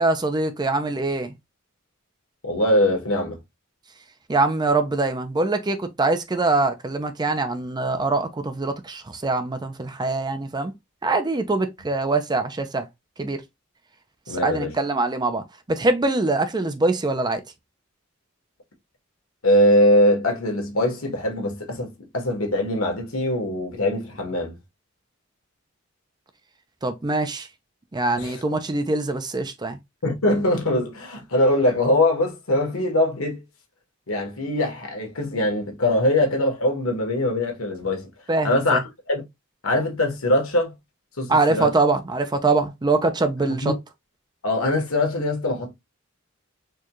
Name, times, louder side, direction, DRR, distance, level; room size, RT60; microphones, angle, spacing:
voice 1, 0.0-1.4 4.3-10.7 11.0-12.9 13.2-13.4 14.3-17.4 26.8-27.5 27.9-29.8 38.3-38.8 41.3-43.7, right 3 dB, 20° right, 0.5 m, -23 dB
voice 2, 2.4-3.4 14.3-14.7 19.4-24.6 28.2-28.4 30.0-33.4 34.1-38.1 38.4-38.8 39.1-39.2 39.6-40.7 41.2-41.7 43.5-43.7 44.4-45.7, left 1 dB, 85° left, 1.4 m, -22 dB
4.5 x 2.3 x 3.0 m
head